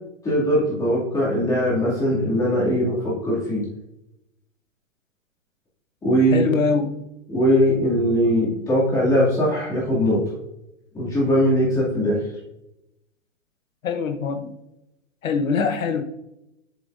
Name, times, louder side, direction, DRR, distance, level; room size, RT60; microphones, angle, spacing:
voice 1, 0.2-3.6 6.0-6.5 7.3-10.2 10.9-12.2, equal, 10° left, -7 dB, 2.4 m, -20 dB
voice 2, 6.3-7.0 13.8-14.5 15.2-16.0, left 5 dB, 90° left, 7 dB, 1.1 m, -23 dB
7.7 x 7.1 x 2.6 m, 0.88 s
hypercardioid pair, 155°, 40 cm